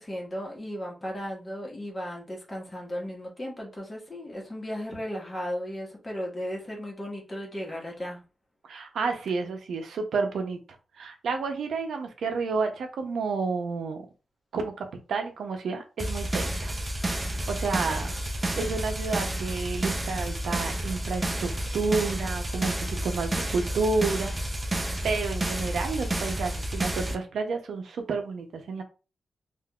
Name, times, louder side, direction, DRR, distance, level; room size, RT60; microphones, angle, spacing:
voice 1, 0.0-8.2, equal, 25° left, -2 dB, 1.3 m, -35 dB
voice 2, 8.6-10.6 11.0-14.0 14.5-16.7 17.1-18.1 18.6-22.7 23.0-24.3 25.0-28.8, right 4 dB, 90° right, 5 dB, 0.6 m, -30 dB
sound 1, 16.0-27.1, right 1 dB, 20° right, 0.5 m, -30 dB
3.6 x 2.5 x 2.3 m, 0.32 s
wide cardioid pair, 100°, 0 cm